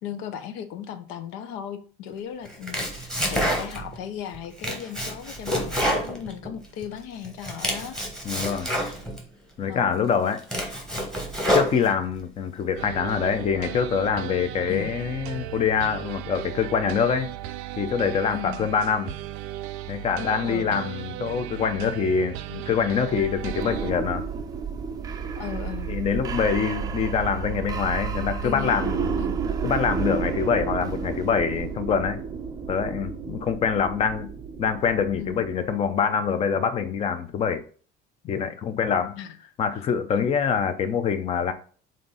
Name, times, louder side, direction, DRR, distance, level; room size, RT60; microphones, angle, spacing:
voice 1, 0.0-8.0 9.6-10.0 14.7-14.9 18.3-18.7 20.4-20.8 25.4-25.9 28.2-28.8 29.2-29.4 35.2-35.5 39.2-39.5, left 9 dB, 75° left, 0.8 m, -36 dB
Domestic sounds home sounds, 2.5-4.0 4.3-6.9 7.2-9.2 9.8-9.9 10.3-12.2, equal, 5° left, 1.1 m, -28 dB
voice 2, 8.2-8.7 9.6-10.4 11.5-17.3 17.8-19.1 19.9-24.2 25.9-29.2 29.6-32.2 32.7-34.3 34.6-37.6 38.2-39.2 39.6-41.5, left 6 dB, 30° left, 0.6 m, -25 dB
sound 1, 12.8-23.9, right 14 dB, 85° right, 0.5 m, -36 dB
sound 2, 23.1-35.9, right 6 dB, 15° right, 0.5 m, -31 dB
7.5 x 2.7 x 5.4 m
cardioid pair, 175°, 21 cm